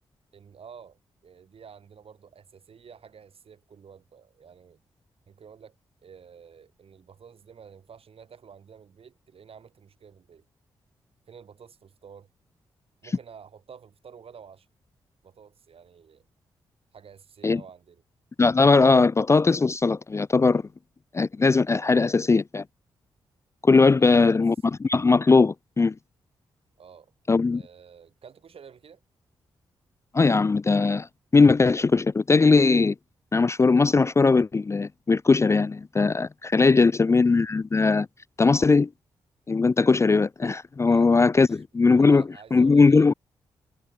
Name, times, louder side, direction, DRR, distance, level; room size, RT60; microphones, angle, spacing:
voice 1, 0.3-4.8 5.3-5.8 6.0-10.5 11.3-12.3 13.0-14.7 15.2-16.3 16.9-18.0 24.0-24.4 26.8-27.1 27.5-29.0 36.5-36.9 40.9-41.1 41.3-41.6 42.0-43.1, right 7 dB, 60° right, 7.7 m, -50 dB
voice 2, 18.4-20.6 21.1-22.6 23.6-24.6 24.8-25.9 27.3-27.6 30.1-31.1 31.3-32.9 33.3-38.1 38.4-38.9 39.5-42.2 42.5-43.1, left 4 dB, 25° left, 0.4 m, -19 dB
supercardioid pair, 40°, 11 cm